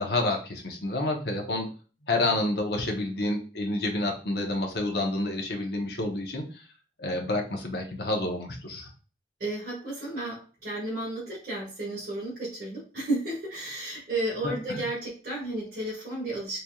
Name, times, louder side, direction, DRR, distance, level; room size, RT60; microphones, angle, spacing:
voice 1, 0.0-1.7 2.0-6.5 7.0-8.9 14.4-14.8, left 2 dB, 70° left, 2 dB, 0.9 m, -29 dB
voice 2, 9.4-16.6, right 1 dB, 55° right, -8 dB, 1.7 m, -33 dB
4.1 x 3.3 x 2.3 m, 0.36 s
head